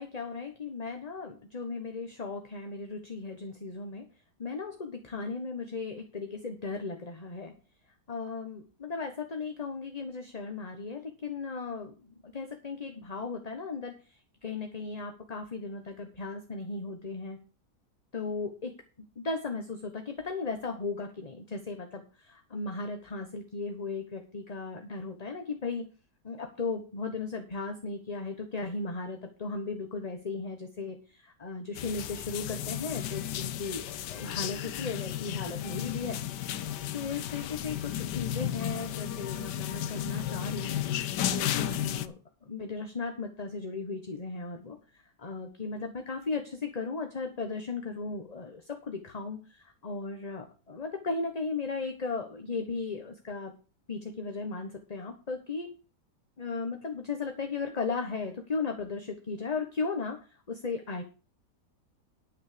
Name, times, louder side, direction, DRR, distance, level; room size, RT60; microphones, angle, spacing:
voice 1, 0.0-4.0 4.4-7.5 8.1-17.4 18.1-18.7 19.2-25.8 26.2-36.2 36.9-42.1 42.4-53.5 53.9-55.7 56.4-61.0, left 4 dB, 25° left, 4 dB, 1.2 m, -36 dB
sound 1, 31.7-42.1, left 11 dB, 85° left, 1.4 m, -34 dB
10.5 x 6.4 x 6.7 m, 0.35 s
omnidirectional pair, 1.8 m